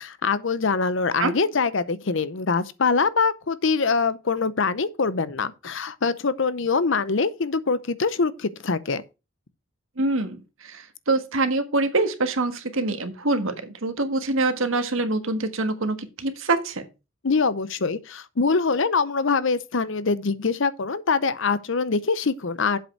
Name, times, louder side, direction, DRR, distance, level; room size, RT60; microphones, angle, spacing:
voice 1, 0.0-9.0 17.2-22.8, left 4 dB, 60° left, 0.7 m, -24 dB
voice 2, 10.0-16.8, right 2 dB, 70° right, 1.5 m, -25 dB
7.8 x 5.3 x 6.5 m
head